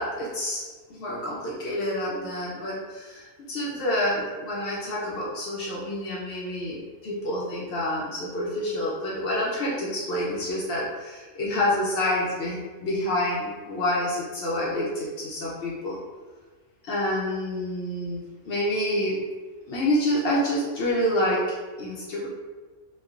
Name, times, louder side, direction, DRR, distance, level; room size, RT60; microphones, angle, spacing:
voice 1, 0.0-16.0 16.8-19.2 19.7-21.4 21.8-22.3, left 1 dB, 60° left, -6 dB, 0.6 m, -28 dB
3.1 x 2.2 x 2.4 m, 1.4 s
omnidirectional pair, 1.5 m